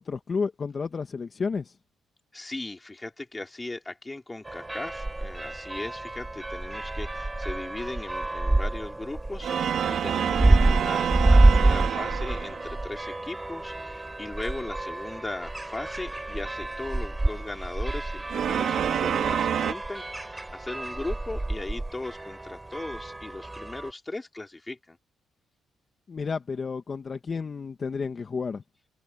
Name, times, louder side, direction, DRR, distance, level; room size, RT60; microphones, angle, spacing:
voice 1, 0.0-1.7 26.1-28.6, left 5 dB, 40° left, 1.3 m, -31 dB
voice 2, 2.3-25.0, left 2 dB, 15° left, 3.6 m, -38 dB
sound 1, 4.4-23.9, right 2 dB, 15° right, 3.9 m, -27 dB
sound 2, 9.4-12.8 18.3-19.7, right 9 dB, 65° right, 3.3 m, -27 dB
cardioid pair, 90°, 0 cm